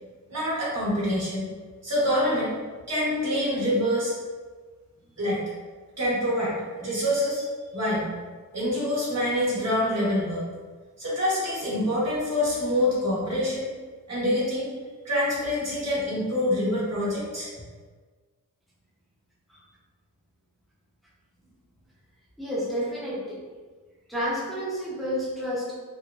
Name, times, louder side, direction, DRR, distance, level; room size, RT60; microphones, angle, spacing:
voice 1, 0.3-1.4 1.8-2.5 2.9-4.1 5.2-5.4 6.0-7.4 7.7-8.1 8.5-10.5 11.0-13.7 14.1-14.7 15.0-17.5, left 1 dB, 50° right, -8 dB, 1.2 m, -26 dB
voice 2, 22.4-23.4 24.1-25.8, equal, ahead, -8 dB, 0.7 m, -30 dB
3.0 x 2.0 x 2.4 m, 1.4 s
wide cardioid pair, 135°, 33 cm